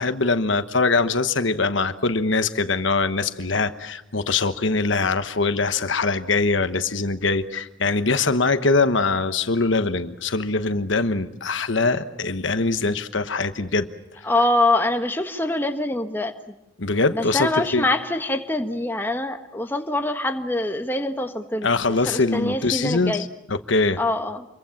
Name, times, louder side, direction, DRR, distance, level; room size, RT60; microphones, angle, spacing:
voice 1, 0.0-13.9 16.8-17.9 21.6-24.0, left 3 dB, 70° left, 11 dB, 1.2 m, -22 dB
voice 2, 14.2-16.5 17.1-23.3 24.0-24.5, left 2 dB, 10° left, 6 dB, 1.5 m, -24 dB
27.5 x 23.0 x 7.3 m, 0.91 s
head